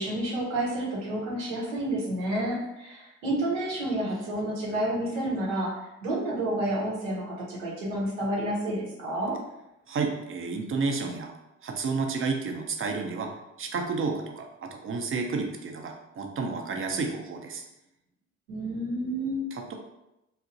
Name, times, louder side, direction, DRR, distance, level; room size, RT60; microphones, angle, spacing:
voice 1, 0.0-5.7 6.0-9.4 18.5-19.4, right 1 dB, 80° right, -4 dB, 0.9 m, -30 dB
voice 2, 9.9-11.3 11.6-13.3 13.6-17.6 19.5-19.7, right 4 dB, 35° right, 3 dB, 0.6 m, -31 dB
2.9 x 2.4 x 2.5 m, 0.90 s
hypercardioid pair, 45°, 38 cm